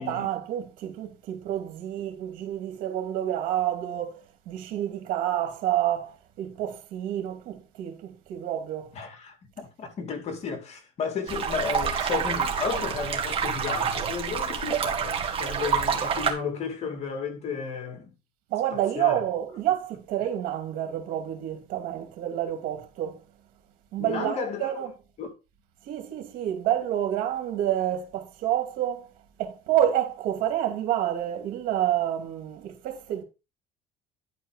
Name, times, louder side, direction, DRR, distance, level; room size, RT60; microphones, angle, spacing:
voice 1, 0.0-8.9 18.5-23.2 23.9-24.9 25.9-29.1 29.4-33.2, right 11 dB, 75° right, 2.5 m, -28 dB
voice 2, 8.9-18.1 18.7-19.2 24.0-24.7 25.2-25.3, left 5 dB, 45° left, 2.3 m, -33 dB
sound 1, 11.3-16.3, right 6 dB, 40° right, 2.0 m, -27 dB
11.0 x 4.7 x 4.9 m
cardioid pair, 120°, 15 cm